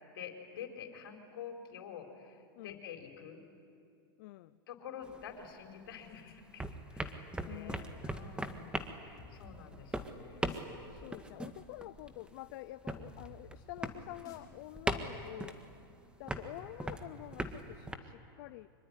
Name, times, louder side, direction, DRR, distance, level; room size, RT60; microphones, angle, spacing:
voice 1, 0.1-3.4 4.7-10.5, left 8 dB, 75° left, 4 dB, 4.3 m, -48 dB
voice 2, 4.2-4.5 7.5-8.1 10.9-15.6 16.2-18.7, left 17 dB, 60° left, 14 dB, 0.6 m, -48 dB
sound 1, 5.0-6.1 6.4-18.0, right 1 dB, 10° right, 1.7 m, -40 dB
sound 2, 9.2-16.6, left 3 dB, 30° left, 5.9 m, -58 dB
25.0 x 24.0 x 10.0 m, 2.5 s
hypercardioid pair, 115°, 12 cm